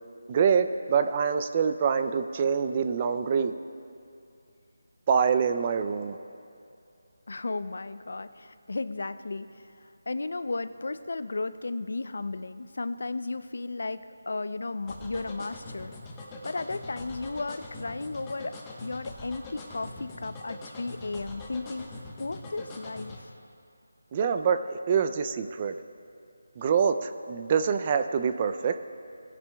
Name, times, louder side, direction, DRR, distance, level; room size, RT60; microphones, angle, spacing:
voice 1, 0.3-3.5 5.1-6.2 24.1-25.7 26.6-28.8, right 6 dB, 25° right, 9 dB, 0.4 m, -25 dB
voice 2, 7.3-15.9 16.4-21.9 22.2-23.3, left 3 dB, 65° left, 13 dB, 0.5 m, -34 dB
sound 1, 14.9-23.2, left 2 dB, 15° left, 1.0 m, -42 dB
19.0 x 10.0 x 2.3 m, 2.5 s
figure-of-eight pair, 170°, 0 cm